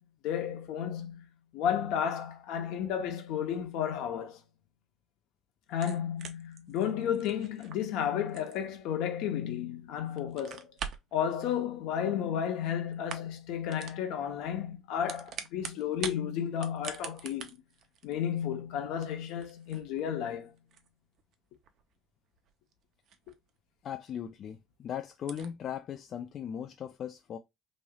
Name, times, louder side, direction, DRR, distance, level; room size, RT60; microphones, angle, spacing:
voice 1, 0.2-1.3 1.5-4.4 5.7-10.7 11.1-17.6 18.0-20.5, left 9 dB, 70° left, 0.8 m, -32 dB
sound 1, 5.7-9.7 10.1-11.1 12.2-12.7 12.9-13.4 13.7-14.0 14.8-16.2 16.5-23.6 23.9-24.0 24.4-24.5 24.7-24.8 25.2-25.5, right 8 dB, 60° right, 0.5 m, -45 dB
voice 2, 23.8-27.4, left 9 dB, 50° left, 0.3 m, -38 dB
3.1 x 2.8 x 2.3 m
hypercardioid pair, 70°, 0 cm